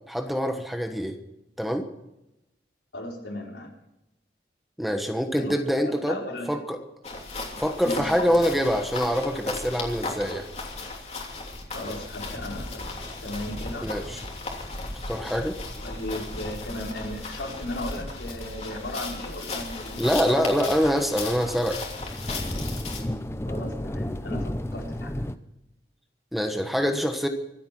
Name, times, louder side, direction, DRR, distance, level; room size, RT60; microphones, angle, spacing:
voice 1, 0.1-1.1 1.6-1.8 4.8-6.2 6.5-6.8 7.6-10.5 13.8-14.2 14.9-15.6 20.0-21.8 26.3-27.3, equal, ahead, 5 dB, 1.1 m, -25 dB
voice 2, 2.9-3.7 5.4-5.6 5.8-6.6 7.8-8.3 11.7-12.9 13.1-13.9 15.8-20.1 23.5-25.1, left 1 dB, 85° left, -1 dB, 4.9 m, -36 dB
sound 1, 7.0-23.0, left 3 dB, 35° left, 3.0 m, -36 dB
sound 2, 12.2-25.4, left 1 dB, 15° left, 0.6 m, -37 dB
25.0 x 8.8 x 6.0 m, 0.91 s
head